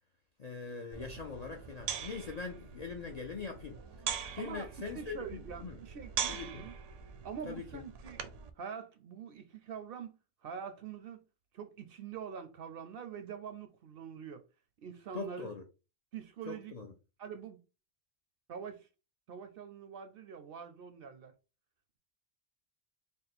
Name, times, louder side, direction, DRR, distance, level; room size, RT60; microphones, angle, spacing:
voice 1, 0.4-3.8 4.3-5.8 6.3-6.6 7.5-7.8 15.1-15.6 16.5-16.9, left 4 dB, 55° left, 0.4 m, -42 dB
sound 1, 0.9-8.5, right 8 dB, 85° right, 0.9 m, -42 dB
voice 2, 4.4-4.7 4.9-6.8 7.2-8.2 8.6-10.1 10.4-11.2 11.5-14.4 14.8-15.5 16.1-16.8 17.2-17.6 18.5-18.9 19.3-21.3, right 7 dB, 60° right, 0.6 m, -45 dB
3.5 x 2.2 x 4.1 m
omnidirectional pair, 1.2 m